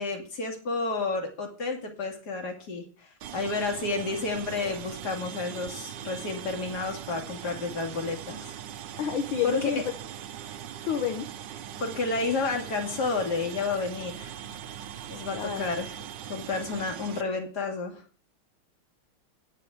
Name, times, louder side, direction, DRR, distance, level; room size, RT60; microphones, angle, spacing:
voice 1, 0.0-8.6 9.4-9.7 11.8-14.4 15.1-16.0 16.3-18.0, left 3 dB, 50° left, 3 dB, 2.7 m, -31 dB
sound 1, 3.2-17.2, right 10 dB, 65° right, 1.3 m, -41 dB
voice 2, 9.0-9.8 10.8-11.3 15.3-15.6, left 7 dB, 70° left, 4 dB, 1.8 m, -29 dB
9.5 x 5.9 x 7.9 m, 0.41 s
omnidirectional pair, 2.3 m